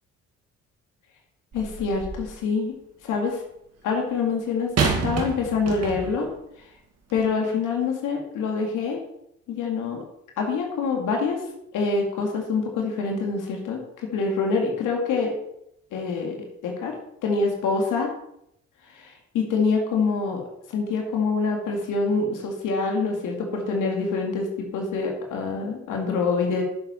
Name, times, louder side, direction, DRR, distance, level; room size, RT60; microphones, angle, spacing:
voice 1, 1.5-2.7 3.0-3.4 3.8-6.3 7.1-9.0 9.5-10.0 10.4-11.4 11.7-15.4 15.9-16.4 16.6-16.9 17.2-18.1 18.9-20.4 20.7-26.6, left 4 dB, 85° left, 1 dB, 2.5 m, -25 dB
sound 1, 1.5-2.3 4.8-6.3 7.1-7.2, right 5 dB, 55° right, 2.3 m, -28 dB
10.5 x 7.2 x 4.5 m, 0.76 s
cardioid pair, 90°, 30 cm